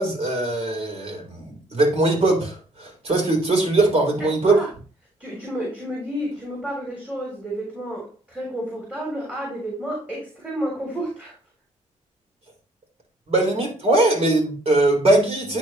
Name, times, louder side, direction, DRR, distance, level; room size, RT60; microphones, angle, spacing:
voice 1, 0.0-4.6 13.3-15.6, right 2 dB, 50° right, 3.7 m, -21 dB
voice 2, 4.2-4.7 5.2-11.3, equal, 10° right, 3.3 m, -31 dB
10.0 x 3.7 x 3.0 m
cardioid pair, 60°, 14 cm